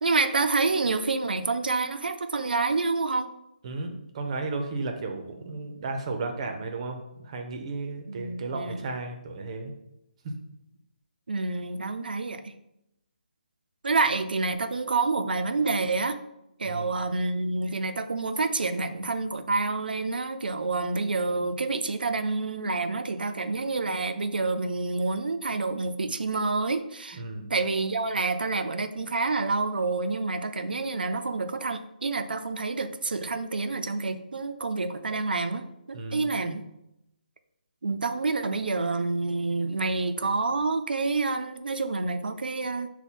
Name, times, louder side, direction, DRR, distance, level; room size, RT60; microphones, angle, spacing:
voice 1, 0.0-3.3 8.1-8.8 11.3-12.5 13.8-16.2 16.6-27.2 27.5-36.6 37.8-42.9, right 3 dB, 80° right, 8 dB, 0.5 m, -28 dB
voice 2, 3.6-9.7 10.2-10.3 16.6-16.9 27.1-27.5 35.9-36.3, right 3 dB, 40° right, 4 dB, 0.7 m, -34 dB
5.3 x 2.2 x 4.3 m, 0.85 s
figure-of-eight pair, 155°, 5 cm